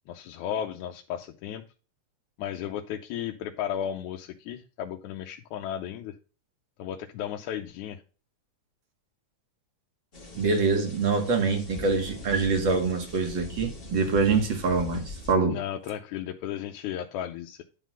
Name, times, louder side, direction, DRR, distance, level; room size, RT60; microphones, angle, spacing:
voice 1, 0.1-1.6 2.4-6.1 6.8-8.0 15.5-17.6, left 10 dB, 80° left, 2.0 m, -34 dB
sound 1, 10.1-15.3, left 2 dB, 30° left, 1.1 m, -42 dB
voice 2, 10.3-15.6, right 4 dB, 45° right, 2.0 m, -25 dB
10.0 x 3.7 x 6.0 m
omnidirectional pair, 3.6 m